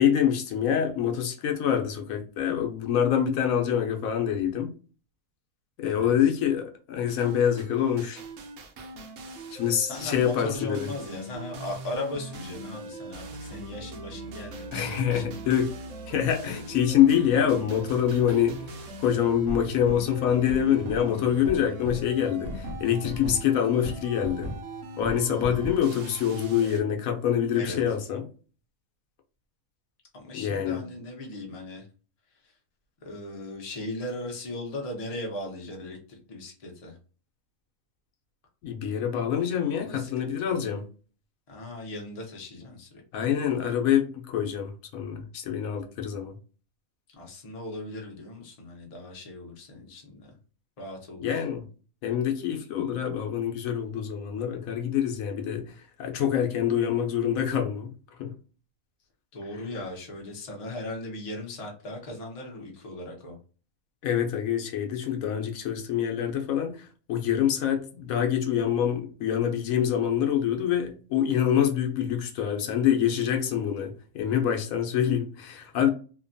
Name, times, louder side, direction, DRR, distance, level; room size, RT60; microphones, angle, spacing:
voice 1, 0.0-4.7 5.8-8.2 9.5-10.9 14.7-15.8 16.1-24.5 25.0-28.2 30.3-30.9 38.6-40.8 43.1-46.4 51.2-51.6 52.0-57.9 58.2-58.3 64.0-75.9, left 9 dB, 80° left, 1.0 m, -26 dB
voice 2, 5.8-6.1 9.2-9.3 9.8-15.5 25.3-25.7 27.5-27.8 30.1-31.9 33.0-37.0 39.8-40.3 41.5-42.9 47.1-50.4 50.8-51.3 59.3-63.4, left 1 dB, 35° left, 0.7 m, -38 dB
sound 1, 7.1-26.8, right 1 dB, 70° right, 0.9 m, -39 dB
2.8 x 2.2 x 2.5 m
omnidirectional pair, 1.5 m